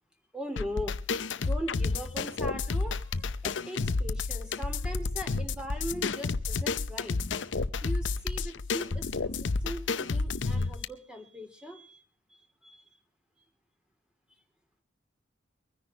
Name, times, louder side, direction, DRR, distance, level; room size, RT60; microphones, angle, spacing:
voice 1, 0.3-0.9 1.3-7.2 7.8-12.0 12.3-12.8, equal, 5° right, 5 dB, 3.1 m, -40 dB
sound 1, 0.6-10.8, left 4 dB, 75° left, 0.7 m, -31 dB
23.5 x 10.0 x 4.4 m, 0.36 s
head